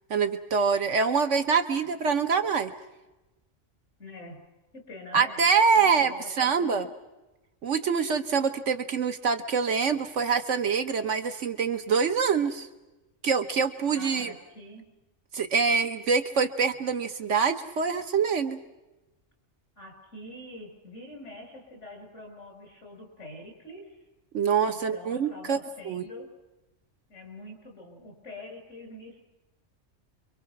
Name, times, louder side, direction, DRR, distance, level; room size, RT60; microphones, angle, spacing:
voice 1, 0.1-2.7 5.1-6.9 7.6-12.7 13.2-14.3 15.3-18.6 24.3-25.6 25.8-26.0, right 5 dB, 80° right, 8 dB, 1.5 m, -25 dB
voice 2, 4.0-4.4 4.7-5.5 5.8-6.7 13.9-14.9 19.8-24.0 24.6-26.3 27.1-29.3, left 2 dB, 75° left, 3 dB, 6.7 m, -45 dB
28.5 x 24.0 x 6.0 m, 1.0 s
omnidirectional pair, 1.2 m